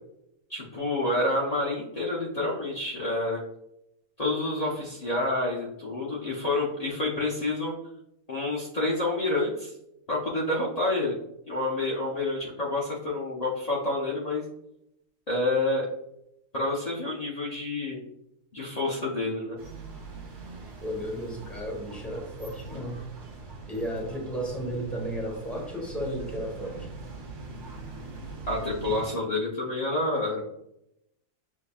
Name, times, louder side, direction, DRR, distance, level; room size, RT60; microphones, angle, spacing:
voice 1, 0.5-3.4 4.2-7.7 8.3-9.7 10.1-11.1 11.5-14.4 15.3-15.9 16.5-18.0 18.5-19.6 28.5-30.4, left 2 dB, 55° left, -5 dB, 0.4 m, -28 dB
sound 1, 19.6-29.0, right 3 dB, 55° right, 1.1 m, -42 dB
voice 2, 20.8-23.0 23.7-26.8, equal, ahead, -1 dB, 0.9 m, -34 dB
7.0 x 2.7 x 2.3 m, 0.81 s
omnidirectional pair, 1.7 m